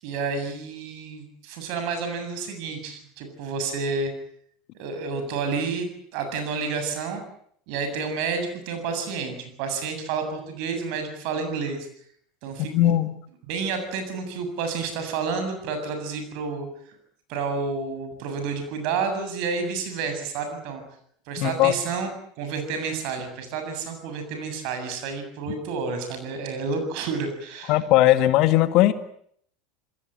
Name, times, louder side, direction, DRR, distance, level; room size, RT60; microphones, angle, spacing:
voice 1, 0.0-4.1 4.8-7.2 7.7-11.9 12.4-12.9 13.5-17.0 17.3-20.8 21.3-22.1 22.4-27.7, right 5 dB, 55° right, 7 dB, 7.6 m, -30 dB
voice 2, 12.6-13.1 21.4-21.7 27.7-28.9, left 14 dB, 50° left, 11 dB, 2.0 m, -19 dB
27.0 x 21.0 x 9.1 m, 0.67 s
figure-of-eight pair, 75°, 0 cm